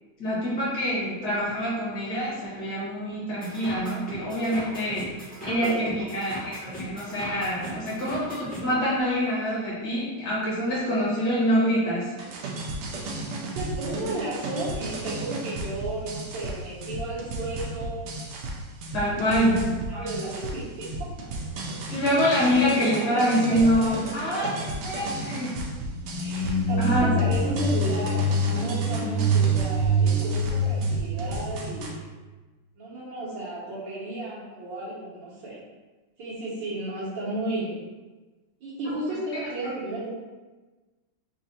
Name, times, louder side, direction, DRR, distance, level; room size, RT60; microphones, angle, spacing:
voice 1, 0.2-5.1 5.4-12.1 18.9-19.6 19.9-20.2 21.9-24.5 24.8-25.5 26.8-27.1, equal, 50° left, -7 dB, 2.0 m, -25 dB
sound 1, 3.4-8.6, equal, 5° left, 0.9 m, -38 dB
sound 2, 12.2-31.9, right 2 dB, 90° right, 1.6 m, -34 dB
voice 2, 13.2-18.1 19.1-19.4 19.9-21.1 21.9-22.1 22.6-23.9 24.3-24.7 26.2-32.1 32.7-35.6 36.2-37.8 38.6-40.1, right 2 dB, 60° right, -7 dB, 1.8 m, -34 dB
sound 3, 25.9-32.0, right 1 dB, 85° left, 1.8 m, -25 dB
4.9 x 2.5 x 4.2 m, 1.2 s
omnidirectional pair, 2.3 m